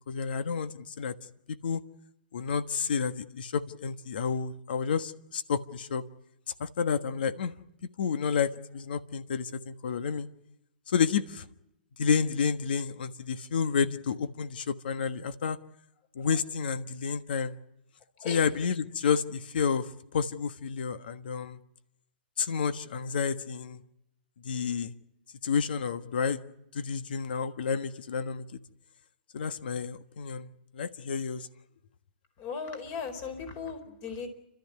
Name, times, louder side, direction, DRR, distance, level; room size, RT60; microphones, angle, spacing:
voice 1, 0.1-1.1 1.5-1.8 2.3-6.0 6.6-7.5 8.0-10.3 10.9-11.5 12.0-15.6 16.1-17.6 18.2-19.9 20.1-21.6 22.4-23.8 24.4-24.9 25.4-26.4 26.7-28.4 29.3-31.5, left 6 dB, 70° left, 11 dB, 1.4 m, -30 dB
voice 2, 32.4-34.3, left 5 dB, 35° left, 8 dB, 4.4 m, -37 dB
29.5 x 13.0 x 9.7 m, 0.86 s
hypercardioid pair, 140°, 5 cm